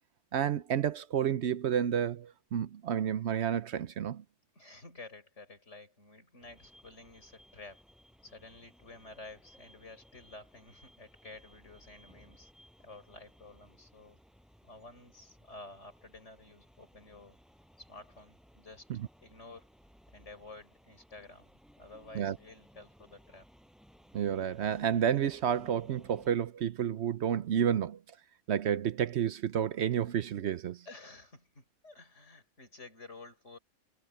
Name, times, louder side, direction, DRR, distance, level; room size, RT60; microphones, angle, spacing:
voice 1, 0.3-4.2 18.9-19.0 22.1-22.4 24.1-28.0 28.5-30.8, right 9 dB, 65° right, 0.9 m, -30 dB
voice 2, 4.5-7.8 8.2-12.5 12.8-14.2 14.6-17.4 17.8-18.9 19.2-19.7 20.1-21.5 21.8-23.5 30.8-33.6, left 3 dB, 65° left, 6.2 m, -51 dB
sound 1, 6.4-26.4, equal, ahead, 6.2 m, -61 dB
omnidirectional pair, 1.3 m